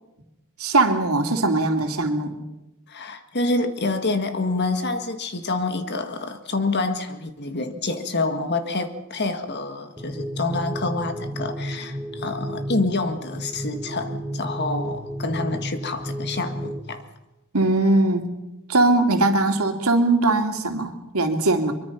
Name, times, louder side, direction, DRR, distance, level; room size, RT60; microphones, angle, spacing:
voice 1, 0.6-2.3 17.5-18.3 18.7-21.7, right 2 dB, 80° right, 4 dB, 2.7 m, -20 dB
voice 2, 2.9-17.0, left 3 dB, 50° left, 8 dB, 1.8 m, -27 dB
sound 1, 10.0-16.8, equal, 10° right, 1.6 m, -32 dB
24.0 x 23.0 x 5.8 m, 0.95 s
head